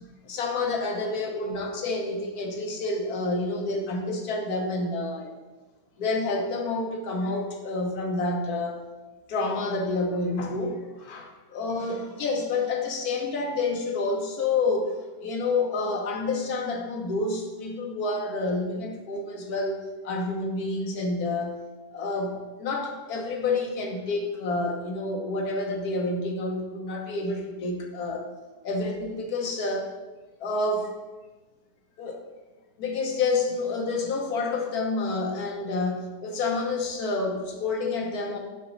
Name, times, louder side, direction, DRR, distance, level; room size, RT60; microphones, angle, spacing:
voice 1, 0.2-5.3 6.0-8.9 9.3-21.6 21.9-28.3 28.6-29.9 30.4-31.0 32.0-32.2 32.8-38.4, left 3 dB, 65° left, 2 dB, 1.2 m, -29 dB
6.8 x 2.9 x 5.4 m, 1.2 s
omnidirectional pair, 1.8 m